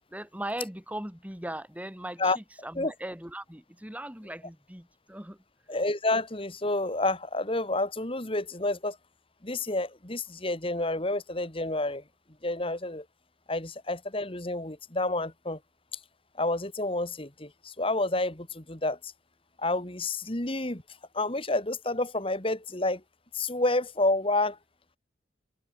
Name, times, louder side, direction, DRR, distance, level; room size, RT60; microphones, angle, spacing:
voice 1, 0.1-5.4, right 1 dB, 10° right, 3.3 m, -39 dB
voice 2, 5.7-9.0 9.4-12.0 12.4-13.0 13.5-15.6 16.4-19.1 19.6-20.8 21.1-23.0 23.3-24.6, left 2 dB, 30° left, 2.4 m, -29 dB
open air
head